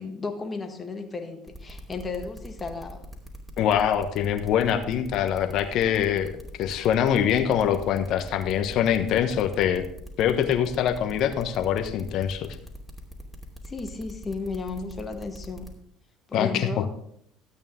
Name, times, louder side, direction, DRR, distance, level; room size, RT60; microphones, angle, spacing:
voice 1, 0.0-3.0 13.7-15.7 16.3-16.9, left 4 dB, 25° left, 5 dB, 1.6 m, -34 dB
sound 1, 1.5-15.7, right 1 dB, 5° right, 2.8 m, -43 dB
voice 2, 3.6-6.3 6.6-9.8 10.2-12.6 16.3-16.8, left 9 dB, 55° left, 9 dB, 1.1 m, -24 dB
13.0 x 8.7 x 3.7 m, 0.69 s
hypercardioid pair, 65°, 0 cm